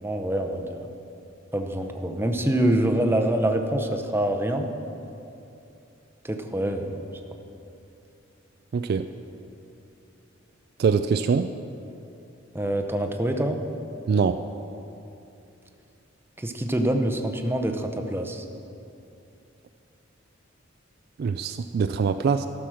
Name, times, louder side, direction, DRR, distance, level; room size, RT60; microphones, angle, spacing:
voice 1, 0.0-0.9 1.5-4.7 6.2-7.0 12.5-13.6 16.4-18.4, right 1 dB, 10° right, 4 dB, 0.7 m, -25 dB
voice 2, 8.7-9.1 10.8-11.5 14.1-14.4 21.2-22.5, right 5 dB, 50° right, 9 dB, 0.3 m, -23 dB
13.5 x 6.1 x 6.3 m, 2.8 s
head